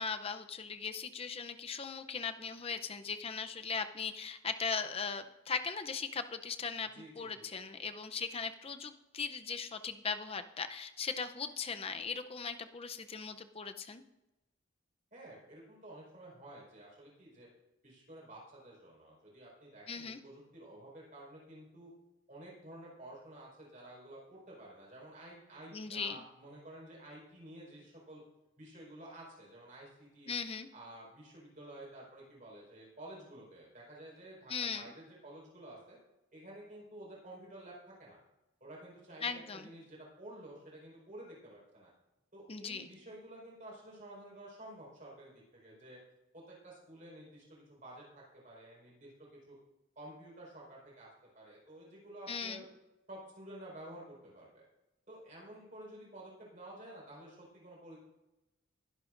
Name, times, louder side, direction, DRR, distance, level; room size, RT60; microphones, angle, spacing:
voice 1, 0.0-14.0 19.9-20.2 25.7-26.2 30.3-30.7 34.5-34.9 39.2-39.7 42.5-42.9 52.3-52.6, left 5 dB, 25° left, 9 dB, 0.6 m, -39 dB
voice 2, 6.9-7.8 15.1-17.5 17.8-21.9 22.3-28.2 28.6-30.3 30.7-36.0 36.3-38.2 38.6-41.9 42.3-46.0 46.3-49.6 49.9-51.1 51.3-52.6 53.1-54.6 55.1-58.0, right 1 dB, 35° right, -4 dB, 4.9 m, -51 dB
21.5 x 11.0 x 2.6 m, 0.98 s
head